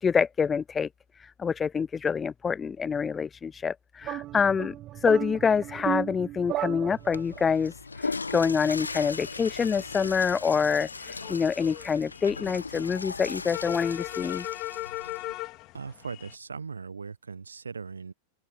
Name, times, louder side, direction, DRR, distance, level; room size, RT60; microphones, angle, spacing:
voice 1, 0.0-0.9 1.2-14.5, left 6 dB, 20° left, 0.3 m, -26 dB
sound 1, 4.0-7.5, right 15 dB, 35° right, 1.3 m, -34 dB
Water / Toilet flush, 7.0-15.3, left 4 dB, 80° left, 1.2 m, -38 dB
sound 2, 8.8-16.4, left 19 dB, 40° left, 4.0 m, -40 dB
voice 2, 15.7-18.1, right 5 dB, 75° right, 1.0 m, -39 dB
open air
figure-of-eight pair, 90°, 0 cm